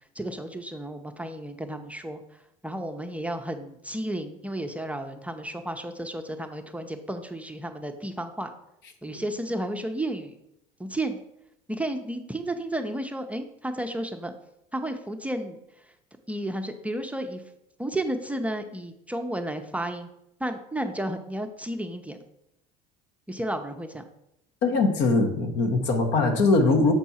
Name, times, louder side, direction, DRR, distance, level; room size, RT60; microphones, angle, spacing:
voice 1, 0.1-8.5 9.0-10.4 10.8-11.2 11.7-14.3 14.7-15.9 16.3-17.4 17.8-20.1 20.4-22.2 23.3-24.1, right 1 dB, 5° right, 5 dB, 0.6 m, -32 dB
voice 2, 24.6-26.9, left 3 dB, 60° left, 5 dB, 1.2 m, -21 dB
7.2 x 4.5 x 4.2 m, 0.81 s
hypercardioid pair, 75°, 20 cm